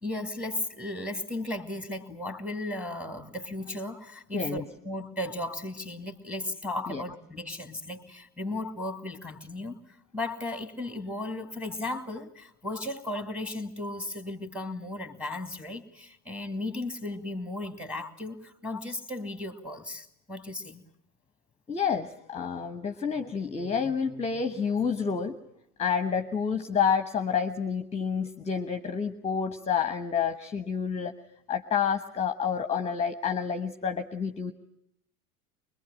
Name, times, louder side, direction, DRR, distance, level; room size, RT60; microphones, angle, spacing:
voice 1, 0.0-9.8 10.1-20.8, left 2 dB, 5° right, 9 dB, 2.3 m, -35 dB
voice 2, 4.3-4.6 6.9-7.0 21.7-25.4 25.8-31.1 31.5-34.5, left 6 dB, 15° left, 8 dB, 1.2 m, -29 dB
24.5 x 22.5 x 8.8 m, 0.74 s
figure-of-eight pair, 85°, 45 cm